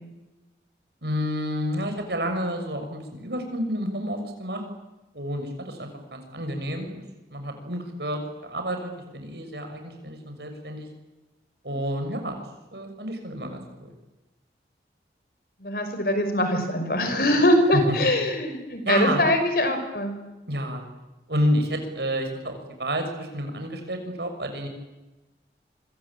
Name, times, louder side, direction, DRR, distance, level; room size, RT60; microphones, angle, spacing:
voice 1, 1.0-4.6 5.1-6.9 7.3-10.9 11.6-12.4 12.7-13.9 17.7-18.1 18.8-19.2 20.5-20.8 21.3-24.7, equal, 70° right, 5 dB, 6.4 m, -29 dB
voice 2, 15.6-20.1, left 1 dB, 55° left, 7 dB, 5.7 m, -23 dB
26.0 x 25.5 x 8.9 m, 1.1 s
head